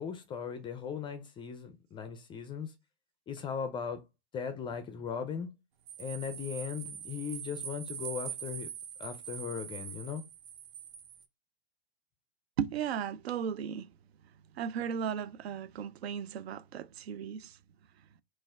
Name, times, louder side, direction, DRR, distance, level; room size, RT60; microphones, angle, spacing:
voice 1, 0.0-2.7 3.3-4.0 4.3-5.5 6.0-8.7 9.0-10.2, left 7 dB, 15° left, 0.4 m, -38 dB
sound 1, 5.9-11.2, right 8 dB, 35° right, 0.7 m, -43 dB
voice 2, 12.6-13.9 14.6-17.5, right 8 dB, 80° right, 0.5 m, -35 dB
4.1 x 2.5 x 3.4 m
hypercardioid pair, 120°, 31 cm